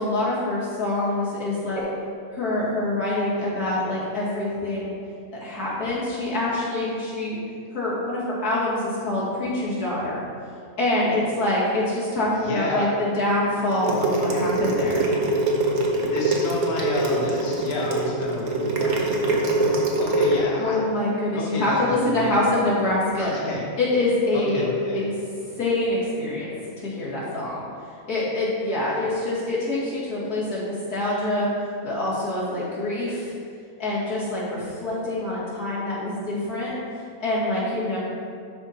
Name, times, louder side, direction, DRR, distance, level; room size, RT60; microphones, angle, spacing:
voice 1, 0.0-1.8 2.3-4.9 5.3-7.4 7.7-10.2 10.8-15.0 20.6-23.4 23.8-24.6 24.9-25.1 25.6-26.5 26.8-27.6 28.1-31.5 31.8-33.3 33.8-38.0, left 1 dB, 75° left, -8 dB, 2.9 m, -25 dB
voice 2, 12.4-12.9 16.0-19.7 20.0-20.8 21.3-22.4 23.1-23.7 24.3-25.1, left 2 dB, 45° left, -3 dB, 1.2 m, -30 dB
sound 1, 13.7-20.4, right 2 dB, 70° right, 1.5 m, -23 dB
11.5 x 4.4 x 4.4 m, 2.4 s
omnidirectional pair, 1.6 m